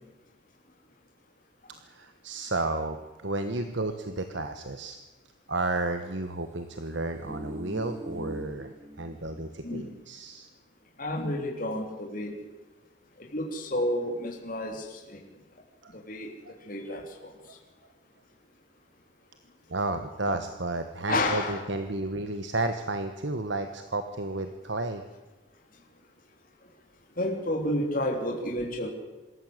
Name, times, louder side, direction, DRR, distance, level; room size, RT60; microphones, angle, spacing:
voice 1, 1.8-5.0 5.5-10.5 15.8-15.9 16.4-16.6 19.7-25.0, right 2 dB, 65° right, 8 dB, 1.3 m, -32 dB
sound 1, 6.9-9.5 9.8-10.0, right 1 dB, 10° right, 3.1 m, -41 dB
voice 2, 11.0-12.3 13.3-15.2 15.9-16.3 16.7-17.0 21.1-21.6 27.2-28.9, left 1 dB, 45° left, 0 dB, 3.5 m, -30 dB
25.5 x 14.0 x 8.0 m, 1.2 s
head